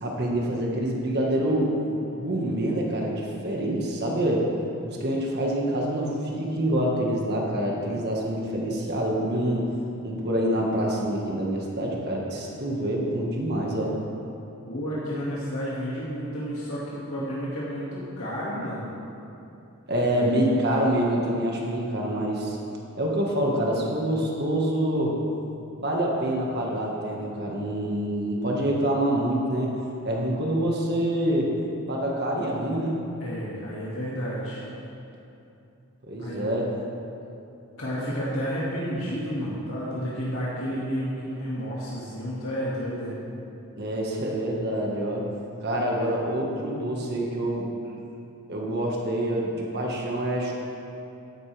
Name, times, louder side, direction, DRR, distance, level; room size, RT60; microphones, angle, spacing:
voice 1, 0.0-1.7 2.2-4.5 4.8-9.6 10.0-13.9 19.9-22.6 23.0-25.2 25.8-29.7 30.0-31.5 31.9-33.0 36.1-36.7 43.8-45.2 45.6-47.7 48.5-50.5, right 1 dB, 45° right, -2 dB, 1.6 m, -26 dB
voice 2, 14.7-18.9 33.2-34.6 36.2-36.4 37.8-43.1, equal, 70° left, -8 dB, 2.2 m, -31 dB
15.0 x 11.0 x 3.4 m, 2.8 s
head